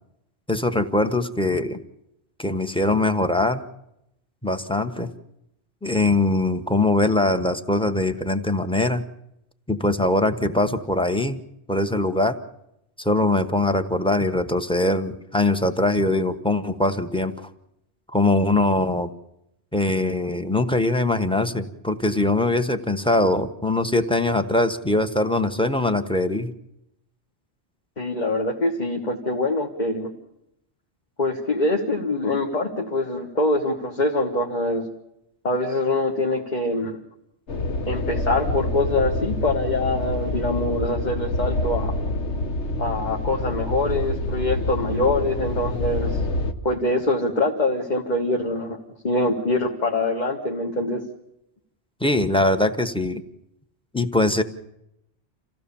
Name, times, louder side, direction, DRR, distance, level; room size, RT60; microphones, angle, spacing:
voice 1, 0.5-1.8 2.4-3.6 4.4-5.1 5.8-9.0 9.7-11.4 11.7-12.4 13.0-17.5 18.1-19.1 19.7-26.5 52.0-53.2 53.9-54.4, left 2 dB, 5° left, 8 dB, 1.0 m, -22 dB
voice 2, 28.0-30.1 31.2-34.9 35.4-37.0 37.9-41.9 42.8-46.2 46.6-48.8 49.0-51.0, left 2 dB, 40° left, 0 dB, 1.7 m, -24 dB
sound 1, 37.5-46.5, left 2 dB, 85° left, 1.5 m, -27 dB
27.5 x 16.0 x 7.0 m, 0.82 s
omnidirectional pair, 1.1 m